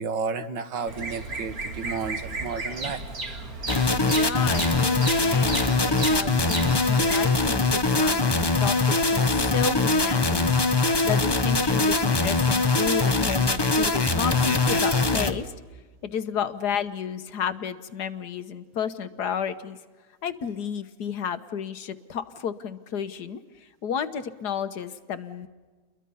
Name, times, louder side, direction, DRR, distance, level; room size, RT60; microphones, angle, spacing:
voice 1, 0.0-3.0 4.7-4.8 13.4-13.5 14.3-14.5, right 5 dB, 75° right, 9 dB, 2.0 m, -32 dB
Bird vocalization bird call bird song, 0.9-7.2, right 2 dB, 50° right, 2.6 m, -34 dB
sound 1, 3.7-15.3, left 3 dB, 20° left, 0.7 m, -22 dB
voice 2, 4.0-15.5 16.0-19.8 20.2-25.5, left 7 dB, 65° left, 11 dB, 1.5 m, -32 dB
29.5 x 22.5 x 5.6 m, 1.4 s
omnidirectional pair, 2.0 m